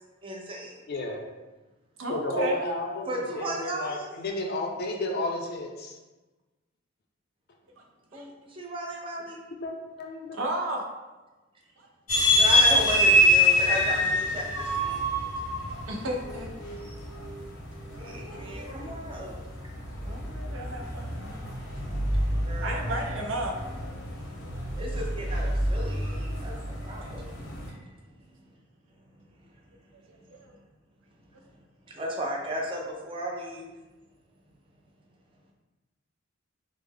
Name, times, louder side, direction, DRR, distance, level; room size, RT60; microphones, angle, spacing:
voice 1, 0.2-0.8 3.0-4.1 8.1-9.4 12.3-15.0 18.0-19.4 22.4-23.0 24.8-27.3 31.9-33.7, right 1 dB, 25° right, -1 dB, 0.5 m, -34 dB
voice 2, 0.9-1.2 2.1-3.1 3.4-6.0 9.6-10.4, left 2 dB, 55° left, 2 dB, 0.5 m, -32 dB
voice 3, 2.0-2.7 7.8-7.9 8.1-8.3 10.3-10.8 11.8-11.9 15.9-16.5 20.0-21.4 22.6-23.6 26.2-26.4 30.1-30.6, right 1 dB, 75° right, 1 dB, 0.5 m, -33 dB
sound 1, 12.1-27.7, left 1 dB, 85° left, 0.8 m, -26 dB
3.2 x 2.0 x 3.5 m, 1.2 s
head